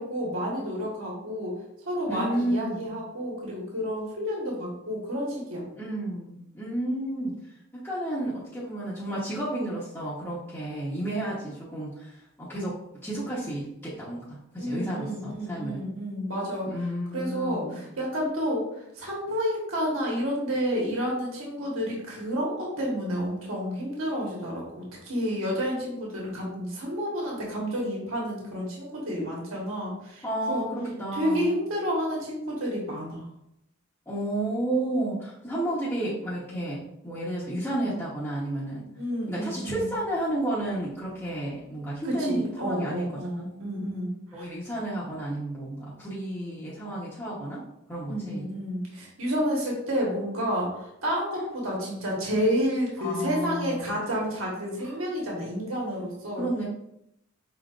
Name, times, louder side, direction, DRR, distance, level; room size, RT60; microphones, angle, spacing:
voice 1, 0.0-1.6 1.9-5.7 14.6-16.7 17.1-30.6 31.1-33.3 39.0-39.9 42.0-44.5 48.0-56.5, equal, 85° right, -3 dB, 1.3 m, -30 dB
voice 2, 2.1-2.9 5.8-7.3 7.7-15.8 16.7-17.8 30.2-31.5 34.1-38.8 39.3-43.0 44.3-47.6 47.9-48.5 52.0-52.2 53.0-54.0 54.8-55.0 56.3-56.6, right 1 dB, 10° left, -9 dB, 0.9 m, -32 dB
5.7 x 3.7 x 2.4 m, 0.82 s
head